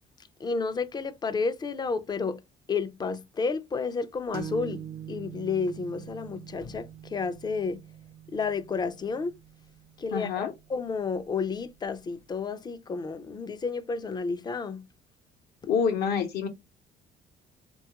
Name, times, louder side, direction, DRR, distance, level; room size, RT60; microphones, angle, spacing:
voice 1, 0.4-2.4 2.7-7.8 8.3-9.3 10.0-14.8, left 4 dB, 25° left, 0.4 m, -31 dB
sound 1, 4.3-11.8, right 9 dB, 65° right, 0.5 m, -44 dB
voice 2, 10.1-10.5 15.7-16.5, left 6 dB, 70° left, 0.7 m, -27 dB
2.9 x 2.3 x 2.8 m
cardioid pair, 110°, 17 cm